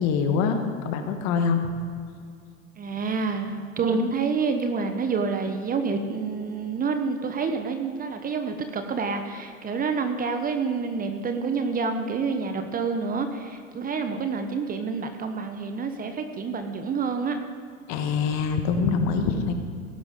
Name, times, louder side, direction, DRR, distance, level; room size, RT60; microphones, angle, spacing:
voice 1, 0.0-1.6 17.9-19.5, left 5 dB, 45° left, 6 dB, 1.5 m, -24 dB
voice 2, 2.8-17.4, right 4 dB, 20° right, 7 dB, 1.0 m, -28 dB
17.0 x 10.5 x 3.7 m, 2.3 s
hypercardioid pair, 95°, 40 cm